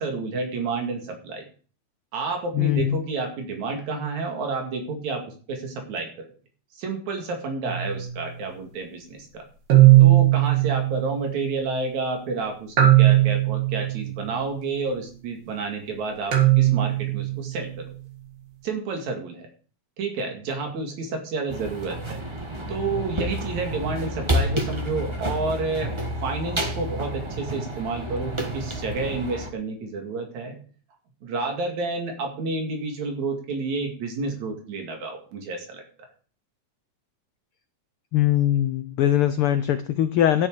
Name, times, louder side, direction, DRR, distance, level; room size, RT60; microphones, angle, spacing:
voice 1, 0.0-1.5 2.1-6.3 6.7-9.5 10.0-17.9 18.6-19.5 20.0-22.2 22.7-25.9 26.2-30.6 31.2-35.8, right 3 dB, 75° right, 3 dB, 3.5 m, -30 dB
voice 2, 2.5-3.0 38.1-40.5, left 11 dB, 85° left, 11 dB, 1.2 m, -21 dB
sound 1, 7.7-8.0 9.7-11.6 12.8-14.4 16.3-17.8, right 16 dB, 60° right, 2.9 m, -18 dB
sound 2, 21.5-29.5, equal, 45° right, 0.3 m, -29 dB
11.5 x 9.7 x 4.8 m, 0.40 s
omnidirectional pair, 3.3 m